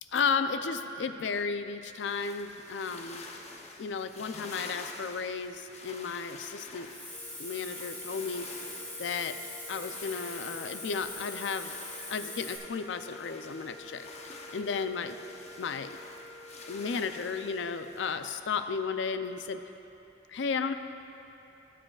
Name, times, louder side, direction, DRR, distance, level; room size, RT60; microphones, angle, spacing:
voice 1, 0.1-3.2 3.8-6.9 7.4-8.5 9.0-9.3 9.7-11.7 12.1-15.1 15.6-16.0 16.6-19.6 20.3-20.7, left 5 dB, 75° left, 9 dB, 0.4 m, -33 dB
sound 1, 1.9-18.3, left 3 dB, 35° left, 0.7 m, -48 dB
Hiss, 6.8-12.6, left 1 dB, 10° left, 1.3 m, -42 dB
sound 2, 7.1-18.0, left 2 dB, 25° right, 0.9 m, -51 dB
17.5 x 7.5 x 2.4 m, 2.9 s
head